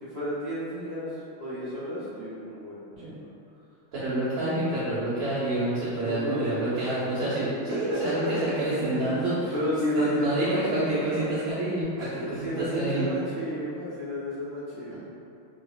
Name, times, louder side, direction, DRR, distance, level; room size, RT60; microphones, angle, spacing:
voice 1, 0.0-1.1 1.4-3.2 6.0-6.9 7.6-9.1 9.5-11.3 12.0-15.0, left 1 dB, 55° right, -12 dB, 0.9 m, -32 dB
voice 2, 3.9-9.5 9.9-13.1, right 1 dB, 75° right, -13 dB, 1.6 m, -28 dB
3.9 x 2.7 x 2.3 m, 2.5 s
omnidirectional pair, 2.3 m